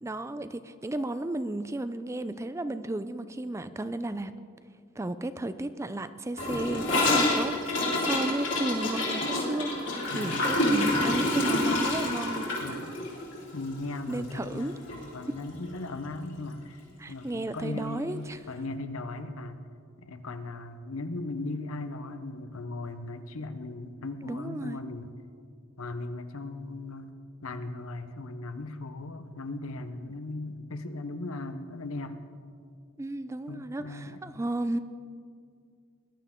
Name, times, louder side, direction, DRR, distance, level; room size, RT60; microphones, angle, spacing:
voice 1, 0.0-4.3 5.0-9.9 10.1-12.5 14.1-14.7 15.3-15.4 17.0-18.5 24.2-24.8 33.0-34.8, right 1 dB, 15° right, 12 dB, 0.3 m, -33 dB
Gurgling / Toilet flush, 6.4-14.6 14.9-15.0 15.3-15.8 16.0-16.1 16.4-16.5 17.5-17.6, left 1 dB, 60° left, 3.2 m, -28 dB
voice 2, 10.1-10.5 12.6-13.0 13.5-16.8 17.1-19.6 20.0-25.1 25.8-27.1 27.4-32.2 33.5-34.4, left 2 dB, 85° left, 10 dB, 0.9 m, -38 dB
20.5 x 11.5 x 3.7 m, 2.2 s
head